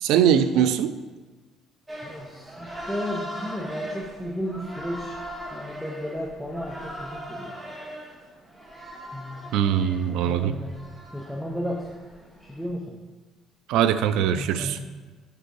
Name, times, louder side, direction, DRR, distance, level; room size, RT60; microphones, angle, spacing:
voice 1, 0.0-0.9 9.5-10.5 13.7-14.8, right 9 dB, 80° right, 12 dB, 0.4 m, -21 dB
sound 1, 1.9-12.7, equal, 15° right, 1.3 m, -40 dB
voice 2, 2.0-5.2 5.5-7.6 9.1-9.5 10.2-10.8 11.1-11.9 12.4-13.0 14.3-14.9, equal, ahead, -2 dB, 0.6 m, -33 dB
6.8 x 4.5 x 4.6 m, 1.3 s
cardioid pair, 130°, 0 cm